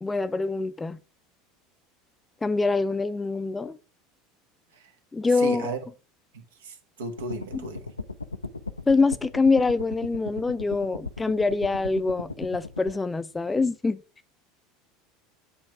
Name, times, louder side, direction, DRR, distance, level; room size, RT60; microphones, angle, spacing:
voice 1, 0.0-1.0 2.4-3.8 5.1-5.7 7.5-7.7 8.9-14.0, left 3 dB, 15° left, 0.4 m, -25 dB
voice 2, 5.4-5.8 6.3-7.8, right 4 dB, 75° right, 1.2 m, -35 dB
sound 1, 7.2-12.9, left 3 dB, 90° left, 0.4 m, -37 dB
8.6 x 3.2 x 4.7 m
figure-of-eight pair, 75°, 0 cm